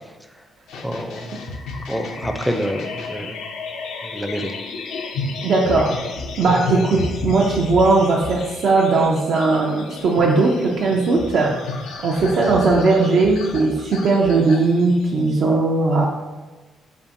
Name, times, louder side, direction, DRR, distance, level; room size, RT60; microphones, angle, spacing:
sound 1, 0.7-15.4, left 3 dB, 85° left, 0.4 m, -32 dB
voice 1, 0.8-1.6 1.9-3.4 4.0-4.5, equal, ahead, 5 dB, 0.4 m, -27 dB
voice 2, 5.4-6.0 6.4-11.8 12.0-16.1, right 3 dB, 65° right, -2 dB, 0.4 m, -18 dB
5.2 x 2.5 x 2.5 m, 1.3 s
cardioid pair, 90°, 0 cm